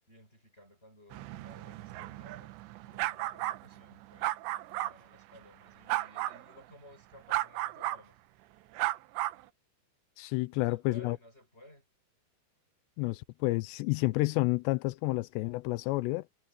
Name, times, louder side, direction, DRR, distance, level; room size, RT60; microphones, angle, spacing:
voice 1, 0.1-2.5 2.8-4.3 4.7-8.2 10.5-11.8, equal, 15° left, 6.0 m, -56 dB
sound 1, 1.1-4.9 5.9-6.4 7.3-8.0 8.8-9.4, right 17 dB, 85° right, 3.0 m, -34 dB
voice 2, 10.2-11.2 13.0-16.2, left 21 dB, 80° left, 2.7 m, -30 dB
omnidirectional pair, 5.1 m